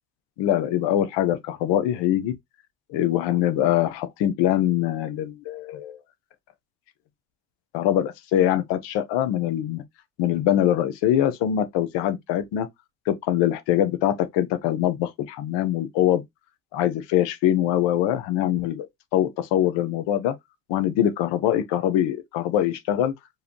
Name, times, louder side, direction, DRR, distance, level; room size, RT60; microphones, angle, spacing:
voice 1, 0.4-2.4 2.9-6.0 7.7-9.8 10.2-12.7 13.1-16.2 16.7-20.3 20.7-23.1, left 11 dB, 90° left, 1.1 m, -23 dB
4.8 x 3.4 x 3.0 m
cardioid pair, 150°, 42 cm